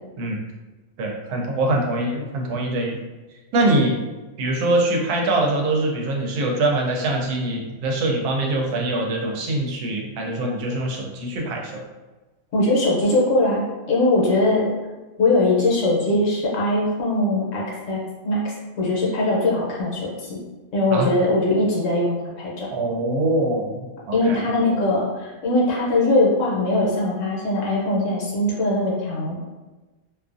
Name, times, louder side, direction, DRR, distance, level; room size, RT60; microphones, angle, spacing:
voice 1, 1.0-3.0 3.5-4.0 4.4-11.8 20.9-21.1 22.7-24.4, right 2 dB, 90° right, 0 dB, 1.1 m, -23 dB
voice 2, 12.5-14.7 15.2-20.4 20.7-22.7 24.1-29.4, left 2 dB, 65° left, -4 dB, 1.0 m, -21 dB
2.6 x 2.4 x 2.4 m, 1.2 s
omnidirectional pair, 1.6 m